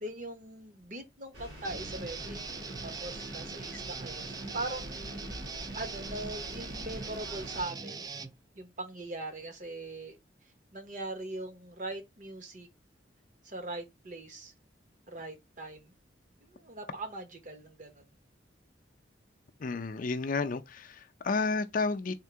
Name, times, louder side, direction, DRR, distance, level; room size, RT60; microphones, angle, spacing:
voice 1, 0.0-2.6 2.8-5.1 5.7-8.0 8.6-10.2 10.7-12.7 13.4-14.5 15.1-15.9 16.4-18.0, right 2 dB, 45° right, 1.0 m, -41 dB
sound 1, 1.3-7.6, equal, 85° right, 2.3 m, -45 dB
Guitar, 1.6-8.3, right 4 dB, 20° right, 0.3 m, -41 dB
voice 2, 19.6-22.1, left 4 dB, 45° left, 0.5 m, -31 dB
3.7 x 2.5 x 4.5 m
head